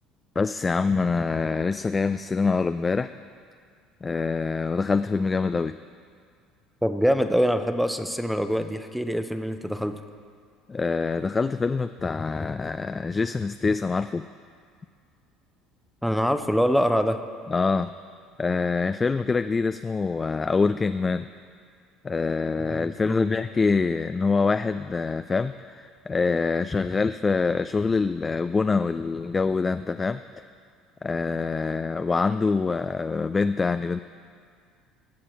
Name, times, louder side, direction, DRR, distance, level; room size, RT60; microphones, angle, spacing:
voice 1, 0.4-3.1 4.0-5.8 10.7-14.2 17.5-17.9 18.4-21.3 22.0-30.5 31.0-34.0, left 4 dB, 25° left, 11 dB, 0.3 m, -25 dB
voice 2, 6.8-10.0 16.0-17.2 22.6-23.3, equal, ahead, 9 dB, 0.8 m, -24 dB
19.0 x 7.6 x 4.4 m, 2.1 s
hypercardioid pair, 65°, 0 cm